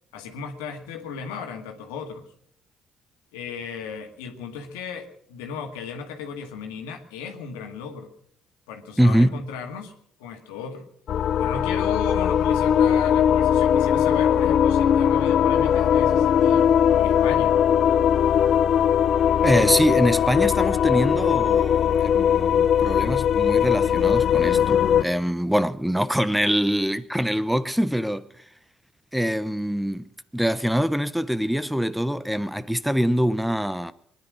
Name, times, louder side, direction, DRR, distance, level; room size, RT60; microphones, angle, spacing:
voice 1, 0.1-2.3 3.3-8.1 8.7-9.9 10.2-10.9 11.4-16.7 17.0-17.6, left 5 dB, 90° left, 2.0 m, -36 dB
voice 2, 9.0-9.4 19.4-28.3 29.1-30.0 30.3-33.9, equal, 5° right, 0.9 m, -24 dB
sound 1, 11.1-25.0, left 9 dB, 60° left, 0.6 m, -20 dB
22.0 x 10.5 x 6.3 m
supercardioid pair, 60°, 0 cm